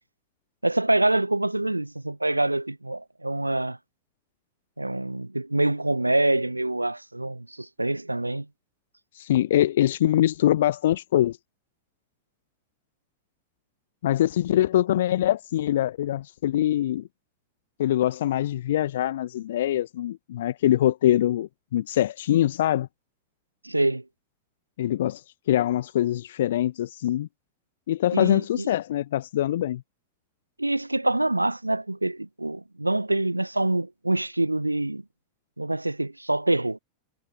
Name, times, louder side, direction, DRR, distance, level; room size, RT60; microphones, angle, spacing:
voice 1, 0.6-3.8 4.8-8.5 23.6-24.0 28.1-28.7 30.6-35.0 35.6-36.8, right 2 dB, 85° right, 0.5 m, -25 dB
voice 2, 9.1-11.4 14.0-17.1 17.8-22.9 24.8-27.3 27.9-29.8, left 12 dB, 60° left, 1.2 m, -23 dB
figure-of-eight pair, 90°, 0 cm